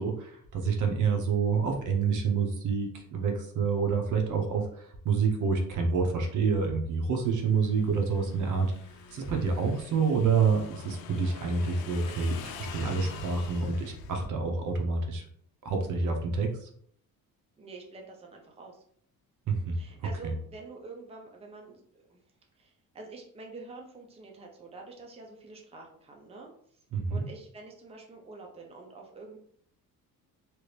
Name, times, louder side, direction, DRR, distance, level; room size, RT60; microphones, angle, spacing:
voice 1, 0.0-8.7 9.1-15.2 15.6-16.7 19.5-20.3 26.9-27.3, right 5 dB, 60° right, 3 dB, 0.8 m, -28 dB
Motorcycle / Engine, 7.2-14.3, left 6 dB, 85° left, 0.5 m, -45 dB
voice 2, 17.6-18.8 19.7-22.2 22.6-26.8 27.1-29.4, right 3 dB, 15° right, 1 dB, 0.6 m, -47 dB
3.0 x 2.5 x 3.2 m, 0.63 s
cardioid pair, 115°, 35 cm